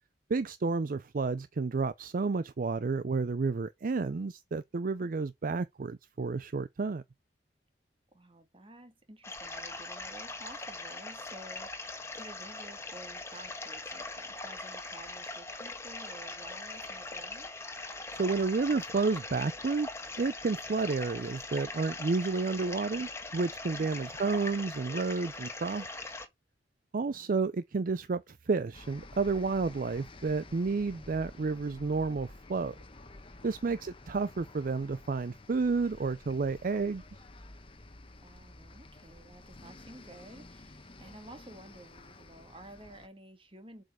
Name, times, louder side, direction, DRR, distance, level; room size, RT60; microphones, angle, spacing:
voice 1, 0.3-7.0 18.2-19.9 20.2-25.9 26.9-32.7 33.4-37.0, right 4 dB, 50° right, 0.4 m, -31 dB
voice 2, 8.1-17.5 27.1-27.4 33.6-33.8 38.2-43.8, right 1 dB, 30° right, 1.8 m, -52 dB
sound 1, 9.2-26.3, left 3 dB, 15° left, 1.4 m, -41 dB
sound 2, 28.7-43.1, left 2 dB, 30° left, 1.2 m, -51 dB
7.7 x 5.2 x 6.1 m
head